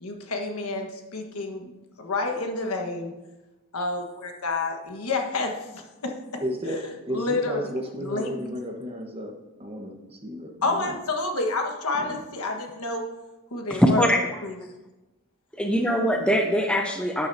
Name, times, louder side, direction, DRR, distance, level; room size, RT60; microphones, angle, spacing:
voice 1, 0.0-1.7 2.0-3.1 3.7-6.4 7.1-7.7 8.0-8.3 10.6-13.1 13.5-14.1 14.4-14.6, left 3 dB, 90° left, 3 dB, 1.5 m, -29 dB
voice 2, 6.4-9.3 9.6-10.9 12.0-12.2, equal, 25° right, 1 dB, 1.3 m, -33 dB
voice 3, 13.7-14.2 15.6-17.3, equal, 5° left, 3 dB, 0.6 m, -22 dB
12.0 x 9.1 x 2.8 m, 1.1 s
head